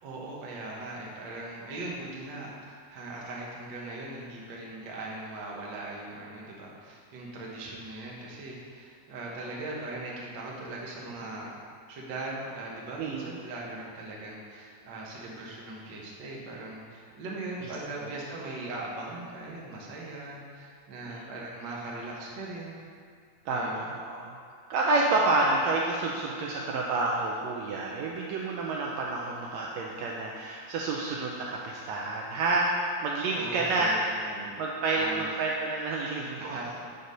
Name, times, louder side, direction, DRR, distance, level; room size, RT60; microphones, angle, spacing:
voice 1, 0.0-11.5 11.9-22.8 23.5-23.8 33.3-34.0 34.2-34.5 34.9-35.3 36.4-36.8, right 2 dB, 55° right, -3 dB, 1.4 m, -39 dB
voice 2, 13.0-13.3 17.6-17.7 18.0-18.1 21.1-21.3 23.4-24.3 24.7-32.7 33.0-34.0 34.6-36.6, right 3 dB, 80° right, -2 dB, 1.7 m, -29 dB
8.0 x 3.9 x 5.3 m, 2.2 s
omnidirectional pair, 3.4 m